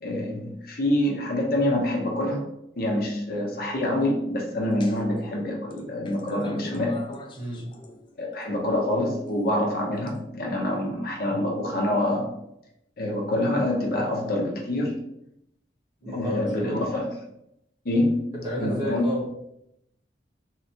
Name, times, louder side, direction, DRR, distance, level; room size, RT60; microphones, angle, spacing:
voice 1, 0.0-2.5 2.8-7.0 8.2-12.3 13.0-15.0 16.1-17.1 17.8-18.2 18.6-19.0, left 1 dB, 55° left, 0 dB, 0.7 m, -26 dB
sound 1, 4.8-5.2 5.7-8.4 9.3-10.1, left 1 dB, 25° left, 0.3 m, -42 dB
voice 2, 7.4-7.7 16.0-16.8 18.3-19.3, equal, 25° right, -5 dB, 1.2 m, -31 dB
3.2 x 3.1 x 2.7 m, 0.80 s
head